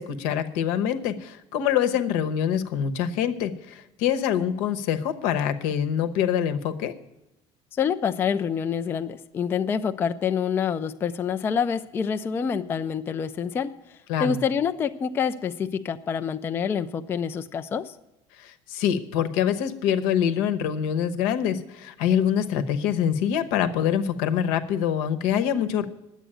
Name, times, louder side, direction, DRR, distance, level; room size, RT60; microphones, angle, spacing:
voice 1, 0.0-6.9 14.1-14.4 18.4-25.9, left 9 dB, 80° left, 9 dB, 1.0 m, -25 dB
voice 2, 7.8-13.7 14.2-17.9, left 7 dB, 20° left, 9 dB, 0.3 m, -27 dB
10.0 x 8.2 x 8.8 m, 0.94 s
cardioid pair, 170°, 13 cm